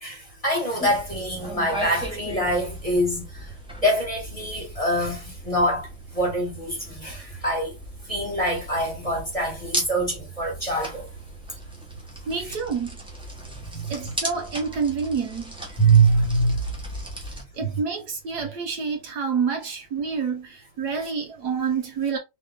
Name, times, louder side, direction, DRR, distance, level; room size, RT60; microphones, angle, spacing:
voice 1, 0.0-3.5 3.8-5.9 6.1-7.7 8.1-11.1 13.7-13.9 15.8-16.6, right 2 dB, 20° left, 1.4 m, -24 dB
sound 1, 0.8-17.4, right 1 dB, 5° right, 0.9 m, -37 dB
voice 2, 12.3-13.0 13.9-15.6 17.3-22.2, right 5 dB, 65° right, 1.4 m, -28 dB
4.0 x 3.0 x 3.6 m
omnidirectional pair, 2.0 m